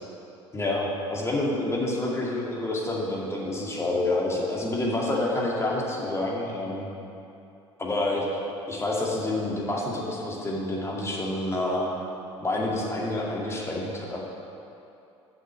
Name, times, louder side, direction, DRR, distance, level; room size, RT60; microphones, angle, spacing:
voice 1, 0.5-6.9 7.8-8.3 8.7-11.9 12.4-14.2, left 2 dB, 20° left, -3 dB, 2.2 m, -28 dB
7.5 x 6.2 x 7.8 m, 2.7 s
figure-of-eight pair, 60°, 15 cm